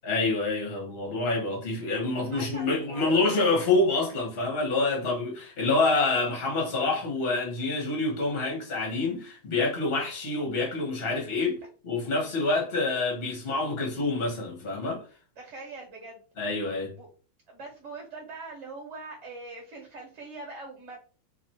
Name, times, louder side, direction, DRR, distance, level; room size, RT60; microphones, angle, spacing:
voice 1, 0.0-11.6 11.8-15.0 16.4-16.9, left 3 dB, 35° left, 1.3 m, -27 dB
voice 2, 2.3-3.6 15.4-16.2 16.9-17.1 17.5-21.0, right 3 dB, 45° right, 1.4 m, -42 dB
3.0 x 2.6 x 4.2 m
omnidirectional pair, 2.0 m